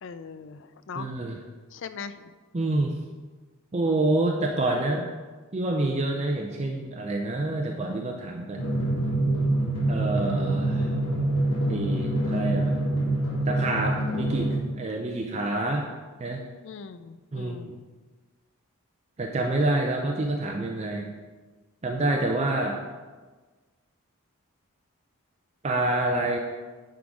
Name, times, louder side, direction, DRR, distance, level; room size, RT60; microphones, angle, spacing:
voice 1, 0.0-1.1 1.7-2.3 16.6-17.8, left 5 dB, 55° left, 11 dB, 0.4 m, -40 dB
voice 2, 1.0-1.4 2.5-2.9 3.7-5.1 5.5-8.7 9.9-11.0 11.7-12.8 13.5-14.5 14.8-15.8 16.2-16.4 17.3-17.6 19.2-21.1 21.8-22.8 25.6-26.4, right 2 dB, 30° right, 1 dB, 0.5 m, -27 dB
Drum, 8.6-14.6, right 1 dB, 75° left, 1.4 m, -25 dB
9.7 x 3.8 x 4.8 m, 1.4 s
head